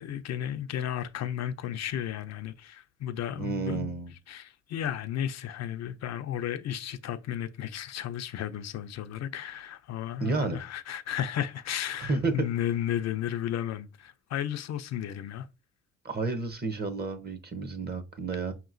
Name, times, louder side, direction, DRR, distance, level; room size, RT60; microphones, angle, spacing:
voice 1, 0.0-3.9 4.3-15.5, left 10 dB, 60° left, 0.5 m, -33 dB
voice 2, 3.4-4.1 10.2-10.6 12.1-12.3 16.0-18.5, right 4 dB, 35° right, 0.8 m, -31 dB
5.3 x 2.9 x 2.5 m
cardioid pair, 90°, 30 cm